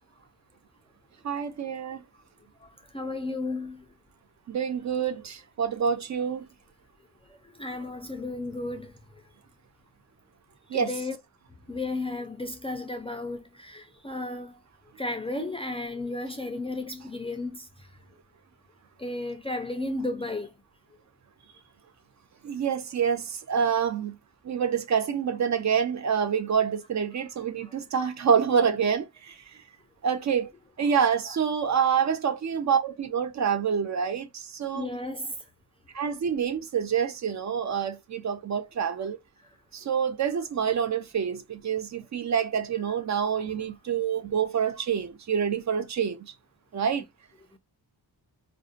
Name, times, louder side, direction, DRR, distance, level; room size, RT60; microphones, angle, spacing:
voice 1, 1.2-2.0 4.5-6.4 10.7-10.9 22.4-24.1 24.4-29.4 30.0-30.5 30.8-34.9 35.9-39.2 39.7-46.3 46.7-47.0, right 7 dB, 45° right, 0.4 m, -27 dB
voice 2, 2.9-3.8 7.6-8.9 10.7-11.2 11.7-14.6 15.0-17.7 19.0-20.5 34.7-35.4 37.7-37.8 43.3-43.4, left 2 dB, 15° left, 0.3 m, -33 dB
2.6 x 2.1 x 2.3 m
wide cardioid pair, 125°, 39 cm